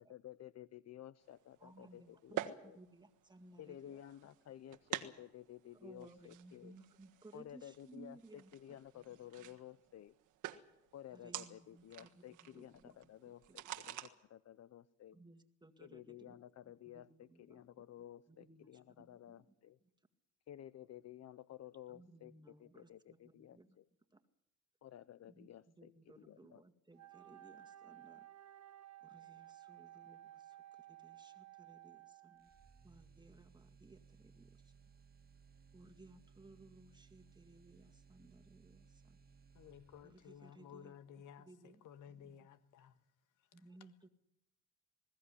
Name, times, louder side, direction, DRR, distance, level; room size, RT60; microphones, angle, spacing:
voice 1, 0.0-2.8 3.6-6.7 7.3-10.1 10.9-15.2 15.8-19.8 20.5-23.9 24.8-26.6, left 11 dB, 60° left, 0.7 m, -54 dB
sound 1, 1.3-14.1, right 13 dB, 90° right, 1.5 m, -49 dB
voice 2, 1.6-4.0 5.7-9.5 11.1-12.2 12.5-13.0 13.2-13.6 15.1-17.6 18.3-19.5 21.9-23.8 24.1-24.2 25.3-28.3 29.0-30.6 30.9-32.5 32.8-34.6 35.7-39.2 40.0-40.9 41.4-41.8 42.1-42.4 43.5-44.1, right 2 dB, 15° right, 2.0 m, -61 dB
Wind instrument woodwind instrument, 26.9-32.9, right 13 dB, 65° right, 1.7 m, -56 dB
sound 2, 32.4-40.4, right 5 dB, 30° right, 2.0 m, -64 dB
voice 3, 39.5-43.0 43.6-43.9, left 8 dB, 85° left, 1.7 m, -56 dB
21.0 x 16.0 x 9.9 m
cardioid pair, 90°, 30 cm